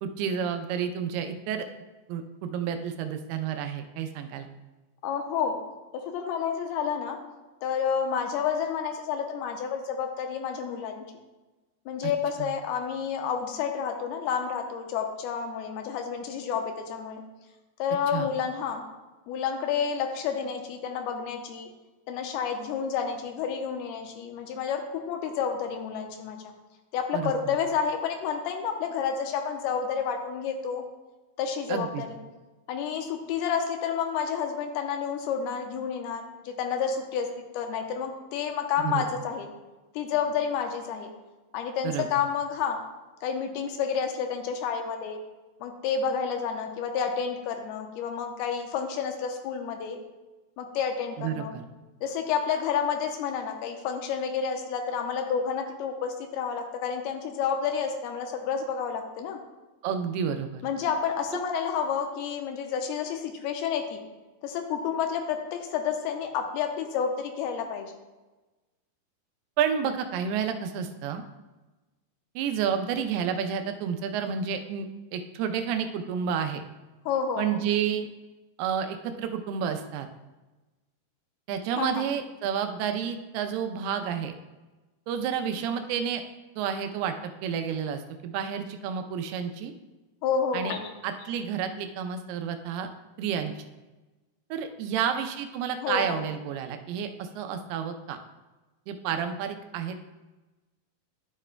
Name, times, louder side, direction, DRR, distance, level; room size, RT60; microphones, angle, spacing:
voice 1, 0.0-1.7 2.1-4.5 12.4-12.5 18.1-18.3 27.1-27.5 31.7-32.0 38.8-39.1 41.8-42.1 51.2-51.6 59.8-60.6 69.6-71.2 72.4-76.6 77.4-78.1 78.6-80.1 81.5-84.4 85.1-86.2 86.6-87.1 87.4-89.7 90.5-90.8 91.0-92.9 93.2-93.7 94.5-98.2 98.9-100.0, right 7 dB, 90° right, 7 dB, 2.7 m, -30 dB
voice 2, 5.0-5.6 5.9-7.2 7.6-11.0 11.9-17.2 17.8-18.8 19.3-21.7 22.1-26.4 26.9-30.8 31.4-32.2 32.7-37.3 37.5-39.5 39.9-41.1 41.5-42.8 43.2-45.2 45.6-50.0 50.6-51.5 52.0-59.4 60.6-64.0 64.4-67.9 77.1-77.6 81.8-82.1 90.2-90.8 95.8-96.3, left 7 dB, 85° left, 4 dB, 2.6 m, -30 dB
11.5 x 7.3 x 2.2 m, 1.1 s
omnidirectional pair, 4.5 m